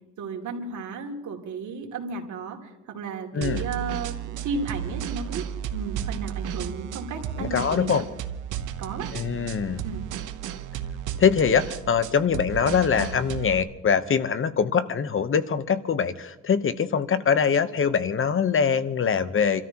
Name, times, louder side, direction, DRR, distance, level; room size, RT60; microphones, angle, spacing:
voice 1, 0.2-5.5 5.7-8.0 8.8-9.1 9.8-10.1, right 4 dB, 75° right, 2 dB, 2.9 m, -34 dB
voice 2, 3.3-3.6 7.4-8.0 9.1-9.8 11.2-19.6, left 6 dB, 45° left, 12 dB, 1.0 m, -23 dB
sound 1, 3.4-13.6, right 9 dB, 90° right, 1.0 m, -33 dB
29.0 x 13.5 x 3.0 m, 1.0 s
cardioid pair, 90°, 30 cm